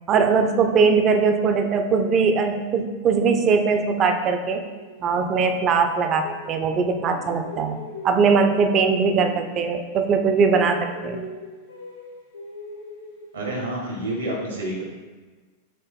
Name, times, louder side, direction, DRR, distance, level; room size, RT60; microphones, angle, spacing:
voice 1, 0.1-4.6 5.0-7.8 8.0-11.2, right 5 dB, 30° right, 6 dB, 0.4 m, -20 dB
sound 1, 4.0-6.8 7.1-10.0 10.3-13.8, left 1 dB, 85° left, 1.1 m, -41 dB
voice 2, 13.3-14.8, right 1 dB, 75° right, -2 dB, 1.2 m, -28 dB
4.1 x 3.5 x 3.5 m, 1.3 s
figure-of-eight pair, 90°, 0 cm